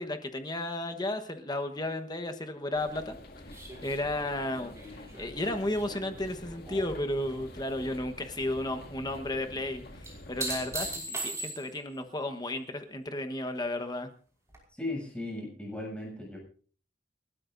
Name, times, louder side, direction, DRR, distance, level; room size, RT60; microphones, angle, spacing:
voice 1, 0.0-3.2 3.5-14.1, left 1 dB, 25° left, 7 dB, 1.2 m, -33 dB
sound 1, 2.7-11.0, left 1 dB, 55° left, 2.3 m, -47 dB
sound 2, 3.5-7.0 7.3-8.0 10.0-11.9 14.5-14.6, right 2 dB, 15° right, 5.1 m, -39 dB
voice 2, 14.7-16.4, left 2 dB, 5° left, -1 dB, 7.4 m, -37 dB
29.5 x 13.0 x 2.6 m, 0.42 s
head